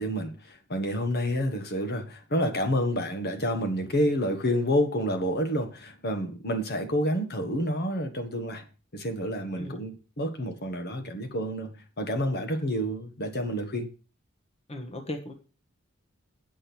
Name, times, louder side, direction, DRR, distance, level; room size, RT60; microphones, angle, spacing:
voice 1, 0.0-8.6 8.9-13.9, equal, 50° left, 1.4 m, -29 dB
voice 2, 14.7-15.3, left 1 dB, 30° left, 1.3 m, -37 dB
8.5 x 6.2 x 6.1 m
head